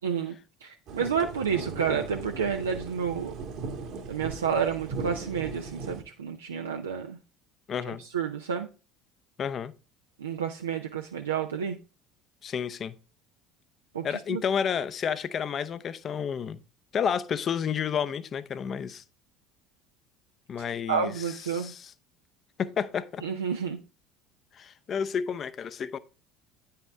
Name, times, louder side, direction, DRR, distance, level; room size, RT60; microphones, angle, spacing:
voice 1, 0.0-0.4 0.6-3.3 4.1-7.2 8.1-8.7 10.2-11.8 13.9-14.0 14.3-14.4 20.9-21.7 23.2-23.8, right 7 dB, 80° right, 0.5 m, -30 dB
sound 1, 0.9-6.0, right 4 dB, 60° right, 1.5 m, -38 dB
voice 2, 7.7-8.0 9.4-9.7 12.4-12.9 14.0-16.6 16.9-19.0 20.5-21.9 22.6-23.2 24.5-26.0, left 7 dB, 40° left, 0.6 m, -31 dB
9.2 x 5.7 x 3.3 m
figure-of-eight pair, 65°, 0 cm